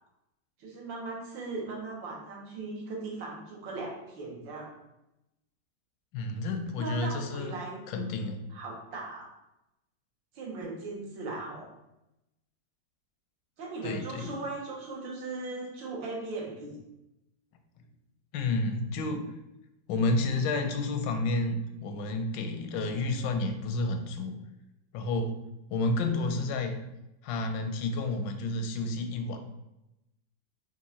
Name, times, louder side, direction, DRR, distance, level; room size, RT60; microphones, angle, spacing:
voice 1, 0.6-4.7 6.8-8.0 8.5-9.3 10.3-11.7 13.6-16.8 26.3-26.5, right 3 dB, 85° right, -2 dB, 1.8 m, -38 dB
voice 2, 6.1-7.5 7.9-8.4 13.8-14.3 18.3-19.2 19.9-24.4 24.9-25.3 25.7-26.8 27.2-29.4, left 2 dB, 85° left, 6 dB, 1.3 m, -30 dB
4.6 x 2.5 x 4.1 m, 0.91 s
omnidirectional pair, 2.0 m